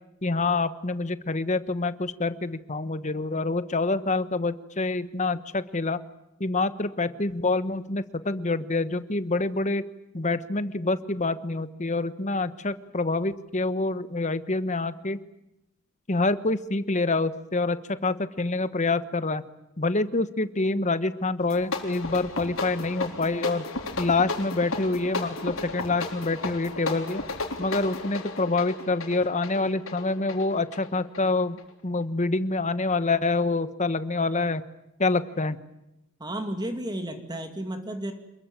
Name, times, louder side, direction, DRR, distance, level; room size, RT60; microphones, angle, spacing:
voice 1, 0.2-6.0 6.4-9.8 10.1-15.2 16.1-19.4 19.8-23.6 24.0-27.2 27.6-34.6 35.0-35.6, left 3 dB, 35° left, 13 dB, 1.2 m, -26 dB
sound 1, 21.4-31.7, left 3 dB, 75° left, 4.0 m, -34 dB
voice 2, 36.2-38.1, right 1 dB, 20° right, 6 dB, 2.4 m, -32 dB
27.5 x 22.0 x 9.1 m, 0.88 s
head